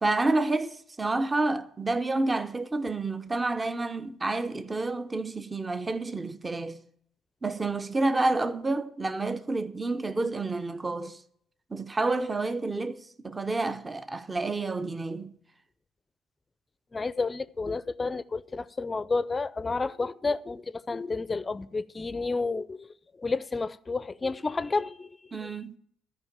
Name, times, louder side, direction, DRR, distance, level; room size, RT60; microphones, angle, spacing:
voice 1, 0.0-6.8 7.4-11.2 11.7-15.3 25.3-25.7, right 2 dB, 25° right, 0.8 m, -29 dB
voice 2, 16.9-25.6, left 3 dB, 25° left, 0.5 m, -31 dB
13.5 x 5.1 x 8.7 m
hypercardioid pair, 50°, 0 cm